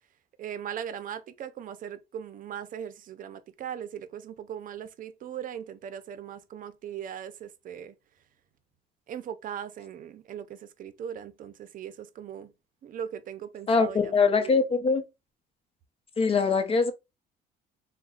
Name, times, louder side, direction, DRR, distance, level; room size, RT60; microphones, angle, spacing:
voice 1, 0.4-7.9 9.1-12.5 12.8-14.6, right 9 dB, 55° right, 0.6 m, -39 dB
voice 2, 13.7-15.0 16.2-16.9, left 4 dB, 35° left, 0.7 m, -23 dB
3.9 x 2.2 x 3.9 m
cardioid pair, 110°, 17 cm